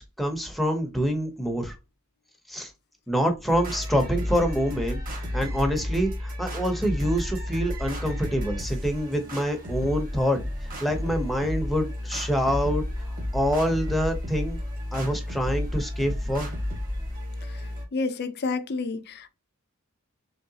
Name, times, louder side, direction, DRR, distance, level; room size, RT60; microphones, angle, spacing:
voice 1, 0.0-1.7 2.5-2.7 3.1-5.0 5.3-10.4 10.8-12.8 13.3-14.6 14.9-16.5, equal, ahead, 0.7 m, -26 dB
sound 1, 3.5-17.8, left 1 dB, 40° right, 1.4 m, -32 dB
voice 2, 17.9-19.3, left 3 dB, 50° left, 0.5 m, -29 dB
3.8 x 3.2 x 2.7 m
head